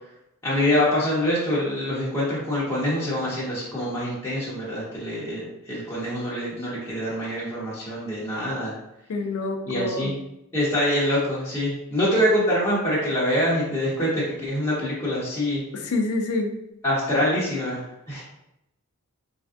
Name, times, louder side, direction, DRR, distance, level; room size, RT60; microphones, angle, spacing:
voice 1, 0.4-8.7 9.7-10.1 10.5-15.6 16.8-18.2, equal, 10° left, -9 dB, 0.7 m, -25 dB
voice 2, 9.1-10.1 15.7-16.5, left 2 dB, 70° left, 3 dB, 0.4 m, -27 dB
3.3 x 2.5 x 2.4 m, 0.86 s
head